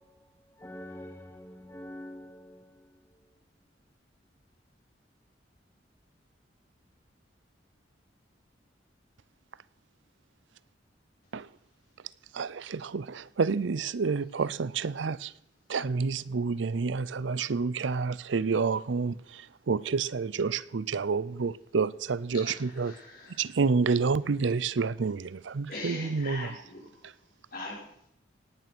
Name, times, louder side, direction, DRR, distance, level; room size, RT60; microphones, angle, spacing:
voice 1, 0.0-3.0, left 1 dB, 15° left, 0.8 m, -46 dB
voice 2, 12.3-15.3 15.7-22.9 23.4-26.6 27.0-27.1, right 4 dB, 80° right, 0.5 m, -29 dB
voice 3, 22.3-23.5 25.7-27.1 27.5-28.1, left 2 dB, 50° left, 5.6 m, -42 dB
18.0 x 9.4 x 6.1 m
head